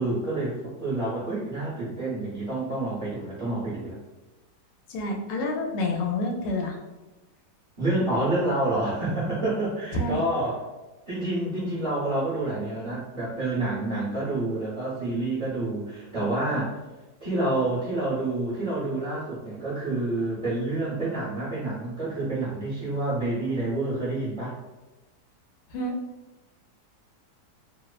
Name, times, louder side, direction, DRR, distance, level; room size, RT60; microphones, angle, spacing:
voice 1, 0.0-4.0 7.8-10.7 11.1-16.7 17.2-24.5, right 2 dB, 35° right, -9 dB, 0.8 m, -28 dB
voice 2, 4.9-6.8 9.9-10.2 25.7-25.9, left 2 dB, 90° left, 0 dB, 1.2 m, -28 dB
3.0 x 2.0 x 2.3 m, 1.1 s
omnidirectional pair, 1.9 m